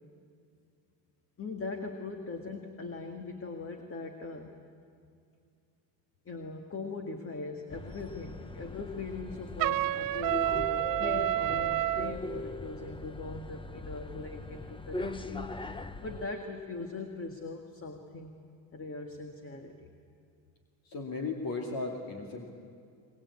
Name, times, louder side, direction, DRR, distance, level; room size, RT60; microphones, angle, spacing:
voice 1, 1.4-4.6 6.3-15.6 16.0-18.3 18.7-19.9, left 3 dB, 30° left, 4 dB, 2.0 m, -40 dB
sound 1, 7.7-16.3, left 2 dB, 10° left, 0.7 m, -40 dB
Trumpet, 9.6-12.1, right 15 dB, 45° right, 0.7 m, -29 dB
voice 2, 20.8-22.5, left 3 dB, 50° left, 1 dB, 2.8 m, -36 dB
23.0 x 22.0 x 8.5 m, 2.4 s
cardioid pair, 110°, 45 cm